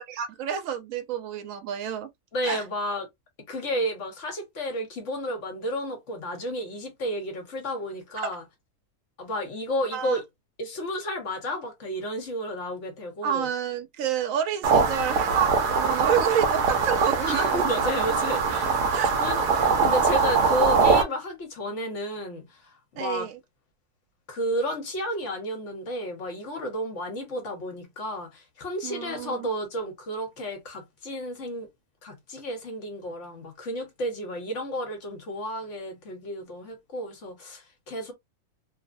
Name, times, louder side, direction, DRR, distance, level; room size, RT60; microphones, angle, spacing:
voice 1, 0.0-2.1 2.4-2.6 8.2-8.3 9.9-10.2 13.2-18.1 18.9-19.1 23.0-23.4 28.8-29.5, right 8 dB, 70° right, 0.8 m, -29 dB
voice 2, 2.3-3.1 3.5-8.4 9.2-10.2 10.6-13.5 17.2-18.8 19.2-23.3 24.3-31.7 32.0-38.1, equal, 55° left, 1.2 m, -32 dB
sound 1, 14.6-21.0, right 5 dB, 90° right, 1.3 m, -22 dB
3.1 x 2.1 x 2.5 m
omnidirectional pair, 1.7 m